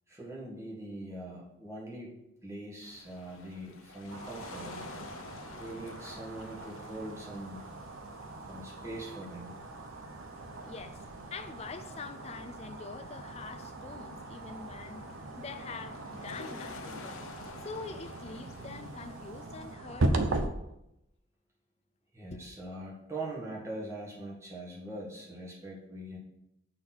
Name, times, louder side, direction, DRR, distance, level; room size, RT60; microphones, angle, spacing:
voice 1, 0.1-2.2 2.4-4.8 5.6-7.6 8.4-9.5 22.1-26.2, right 1 dB, 15° right, 1.6 m, -42 dB
sound 1, 2.8-19.7, left 3 dB, 80° left, 0.7 m, -51 dB
sound 2, 4.1-20.5, right 2 dB, 75° right, 0.7 m, -39 dB
voice 2, 10.6-11.0 11.3-15.1 15.4-17.3 17.6-20.6 22.3-22.6, left 4 dB, 30° left, 0.4 m, -45 dB
6.8 x 4.0 x 5.9 m
head